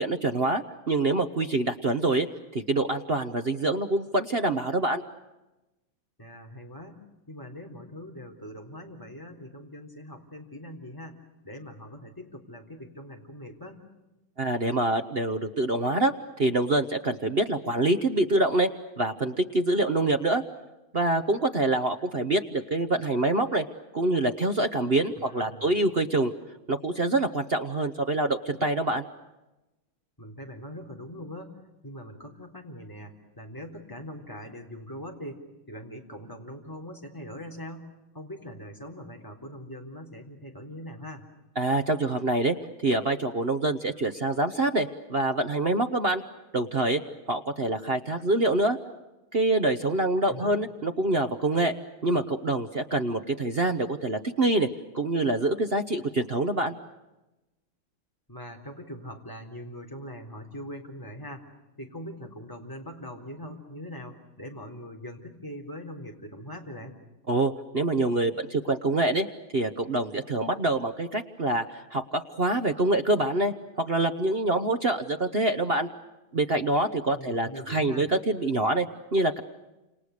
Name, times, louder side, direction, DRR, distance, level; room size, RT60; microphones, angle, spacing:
voice 1, 0.0-2.3 2.5-5.0 14.4-16.1 16.4-18.7 19.0-20.4 20.9-23.7 23.9-26.3 26.7-29.0 41.6-42.5 42.8-46.2 46.5-47.0 47.3-48.8 49.3-51.8 52.0-54.7 54.9-56.7 67.3-69.3 69.5-75.9 76.3-78.9 79.1-79.4, right 2 dB, 40° right, 7 dB, 1.0 m, -25 dB
voice 2, 6.2-7.0 7.3-13.8 25.2-25.7 30.2-41.2 50.3-50.6 58.3-61.5 61.8-67.0 77.1-78.1, equal, 10° left, 2 dB, 3.6 m, -42 dB
29.5 x 28.0 x 6.6 m, 1.0 s
omnidirectional pair, 2.3 m